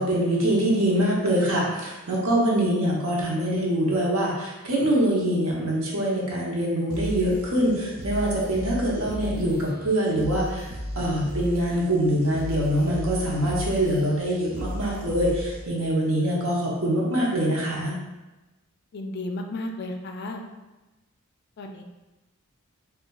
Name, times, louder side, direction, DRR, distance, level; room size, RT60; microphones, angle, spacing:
voice 1, 0.0-17.9, right 1 dB, 65° right, -4 dB, 0.8 m, -24 dB
sound 1, 6.9-15.9, equal, 40° right, 0.4 m, -35 dB
voice 2, 18.9-20.4 21.6-21.8, left 2 dB, 50° left, 4 dB, 0.3 m, -33 dB
4.0 x 2.3 x 2.3 m, 1.1 s
head